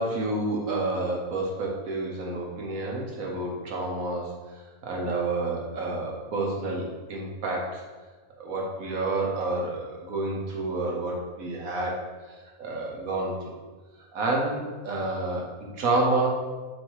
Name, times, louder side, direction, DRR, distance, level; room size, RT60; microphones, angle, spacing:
voice 1, 0.0-4.3 4.8-7.7 8.4-12.0 12.6-13.5 14.1-14.6 14.8-15.5 15.8-16.3, right 2 dB, 75° right, -2 dB, 1.6 m, -29 dB
7.6 x 2.9 x 4.7 m, 1.4 s
omnidirectional pair, 1.5 m